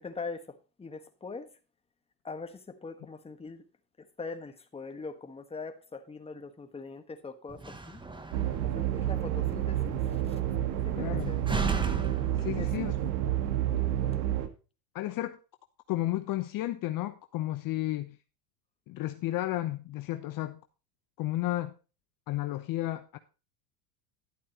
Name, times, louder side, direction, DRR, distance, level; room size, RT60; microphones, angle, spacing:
voice 1, 0.0-1.5 2.2-3.6 4.0-8.0 8.6-10.4 10.8-11.4 12.6-12.7, left 4 dB, 10° left, 1.3 m, -42 dB
Slam, 7.5-13.1, right 4 dB, 10° right, 1.2 m, -37 dB
sound 1, 8.3-14.5, right 11 dB, 75° right, 1.7 m, -30 dB
voice 2, 10.9-11.3 12.4-12.9 14.9-15.4 15.9-18.2 18.9-20.6 21.2-21.7 22.3-23.2, left 15 dB, 40° left, 0.8 m, -32 dB
11.5 x 8.4 x 2.9 m
supercardioid pair, 105°, 50 cm